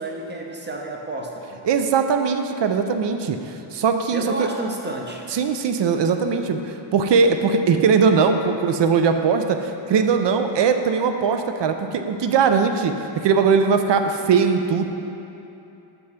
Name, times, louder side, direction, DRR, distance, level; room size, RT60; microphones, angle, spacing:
voice 1, 0.0-1.7 4.1-5.3, right 2 dB, 20° right, 1 dB, 0.6 m, -31 dB
voice 2, 1.6-4.5 5.3-14.9, right 5 dB, 60° right, 7 dB, 0.5 m, -20 dB
6.5 x 5.3 x 5.9 m, 2.9 s
wide cardioid pair, 175°, 49 cm